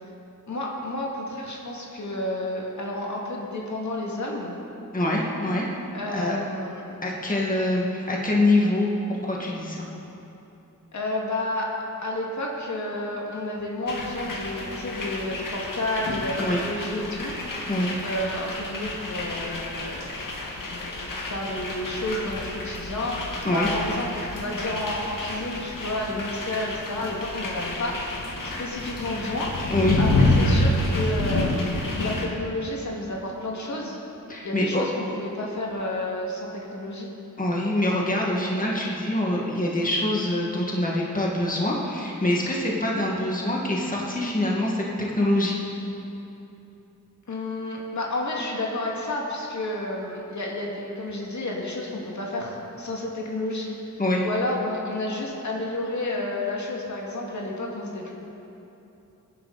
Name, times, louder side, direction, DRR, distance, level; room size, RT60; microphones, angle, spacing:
voice 1, 0.5-4.6 5.9-6.9 10.9-11.7 12.0-17.3 18.0-28.2 28.4-29.5 30.0-31.7 32.0-34.0 34.4-37.1 47.3-53.7 54.2-58.1, left 1 dB, 60° left, -3 dB, 2.3 m, -31 dB
voice 2, 4.9-5.7 6.1-6.4 7.0-8.9 9.2-9.9 16.4-16.6 17.7-17.9 23.4-23.7 29.7-30.0 34.3-34.8 37.4-44.8 45.2-45.6 54.0-54.2, left 1 dB, 25° left, -3 dB, 2.0 m, -24 dB
sound 1, 13.9-32.3, left 2 dB, 75° left, 2.0 m, -29 dB
23.0 x 10.5 x 4.2 m, 3.0 s
wide cardioid pair, 100°, 33 cm